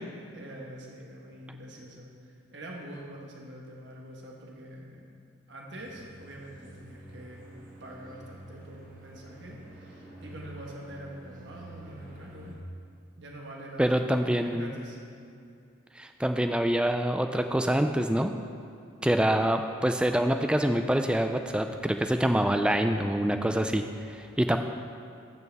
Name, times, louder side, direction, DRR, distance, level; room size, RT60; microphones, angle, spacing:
voice 1, 0.3-5.0 5.5-7.5 7.8-12.6 13.2-15.0, right 1 dB, 60° right, -1 dB, 1.4 m, -45 dB
sound 1, 5.7-12.5, right 1 dB, 40° right, 1.4 m, -48 dB
voice 2, 13.8-14.7 16.0-18.3 19.0-24.6, right 1 dB, 5° right, 6 dB, 0.3 m, -26 dB
13.5 x 6.3 x 3.5 m, 2.6 s
head